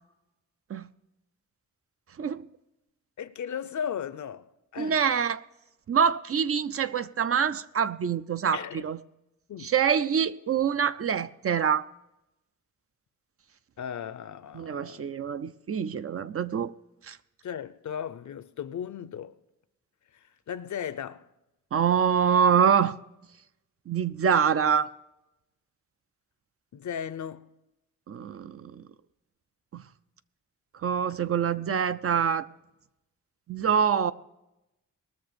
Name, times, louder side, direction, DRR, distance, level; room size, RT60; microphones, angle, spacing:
voice 1, 3.2-5.0 8.5-8.8 9.5-9.7 13.8-15.0 17.4-19.3 20.5-21.2 26.7-27.5, left 8 dB, 70° left, 0.7 m, -36 dB
voice 2, 4.8-5.4 5.9-9.0 9.6-11.9 14.5-16.7 17.1-17.2 21.7-23.0 23.9-24.9 28.1-28.9 29.7-29.8 30.8-32.5 33.5-34.1, right 7 dB, 50° right, 0.5 m, -25 dB
19.5 x 6.8 x 5.1 m
wide cardioid pair, 125°, 30 cm